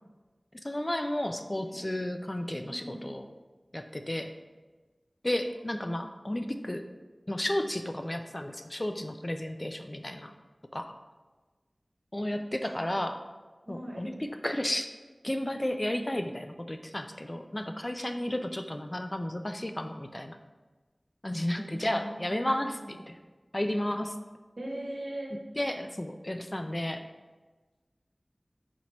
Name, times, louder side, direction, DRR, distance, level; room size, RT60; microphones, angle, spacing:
voice 1, 0.6-3.2 3.7-4.3 5.2-6.8 7.3-10.3 10.7-10.9 12.1-13.2 13.7-14.9 15.2-20.4 21.2-23.2 23.5-24.1 25.6-27.0, left 1 dB, 30° left, 7 dB, 0.3 m, -33 dB
voice 2, 2.7-3.1 12.3-12.4 13.7-14.1 18.1-18.2 21.4-23.0 24.6-25.3, right 1 dB, 70° right, -3 dB, 1.1 m, -41 dB
4.4 x 2.9 x 4.1 m, 1.3 s
wide cardioid pair, 45°, 0 cm